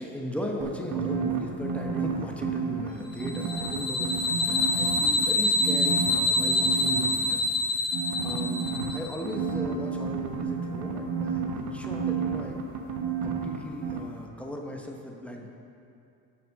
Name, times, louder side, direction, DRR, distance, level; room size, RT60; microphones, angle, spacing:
voice 1, 0.0-12.6 13.2-15.5, equal, 5° left, 0 dB, 0.9 m, -37 dB
sound 1, 0.6-2.9 3.2-5.2 5.6-7.1 7.9-13.6 13.8-14.0, right 6 dB, 75° right, 1.0 m, -31 dB
sound 2, 3.2-9.1, left 2 dB, 40° left, 1.3 m, -26 dB
7.3 x 6.0 x 6.5 m, 2.6 s
cardioid pair, 105°, 40 cm